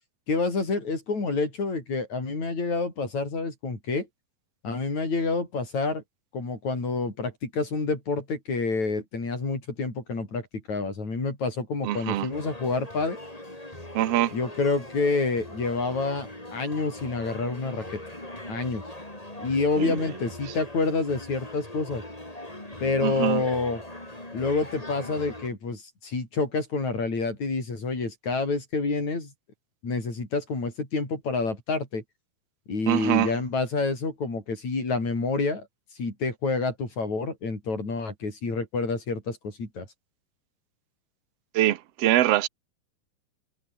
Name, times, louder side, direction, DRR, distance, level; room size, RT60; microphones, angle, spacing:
voice 1, 0.3-4.1 4.6-6.0 6.3-13.2 14.3-18.0 18.5-18.8 19.4-22.0 22.8-23.8 24.3-29.3 29.8-32.0 32.7-35.7 36.0-39.9, left 3 dB, 50° left, 8.9 m, -28 dB
voice 2, 11.8-12.3 13.9-14.3 19.8-20.0 23.0-23.4 32.9-33.3 41.5-42.5, right 13 dB, 60° right, 1.7 m, -23 dB
sound 1, 12.3-25.5, left 1 dB, 10° left, 4.9 m, -41 dB
omnidirectional pair, 4.1 m